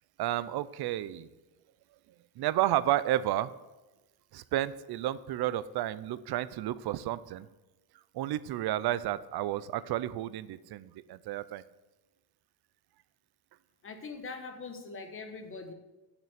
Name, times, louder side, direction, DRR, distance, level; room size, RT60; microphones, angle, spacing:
voice 1, 0.2-1.3 2.4-3.5 4.3-7.5 8.1-11.6, right 13 dB, 65° right, 16 dB, 0.5 m, -31 dB
voice 2, 13.8-15.7, left 4 dB, 30° left, 6 dB, 1.2 m, -42 dB
7.4 x 6.0 x 7.8 m, 1.1 s
cardioid pair, 145°, 42 cm